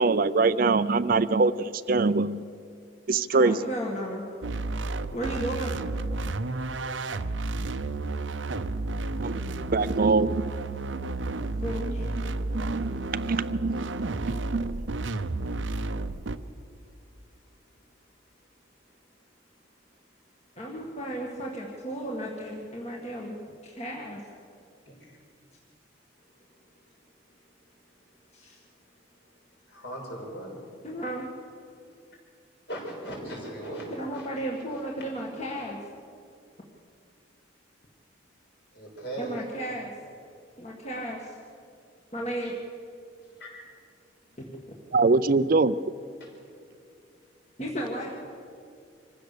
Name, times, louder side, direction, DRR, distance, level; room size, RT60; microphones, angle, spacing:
voice 1, 0.0-2.4 3.1-3.6 9.2-9.4 9.7-10.5 10.9-11.0 11.2-11.5 12.2-14.9 44.9-45.8, right 3 dB, 45° right, 14 dB, 0.5 m, -24 dB
voice 2, 3.3-4.2 5.1-5.7 11.6-12.1 20.6-24.2 28.3-28.6 30.8-31.2 34.0-35.8 39.2-39.9 40.6-41.4 42.1-42.5 44.4-44.5 47.6-48.2, right 1 dB, 35° left, -2 dB, 1.9 m, -34 dB
sound 1, 4.4-16.4, right 2 dB, 75° right, 0.7 m, -32 dB
voice 3, 24.9-25.2 29.7-30.5 32.7-33.9 34.1-34.3 38.7-39.4 43.4-43.7 46.2-46.3, right 1 dB, 60° left, -1 dB, 6.3 m, -38 dB
26.0 x 15.5 x 6.8 m, 2.4 s
head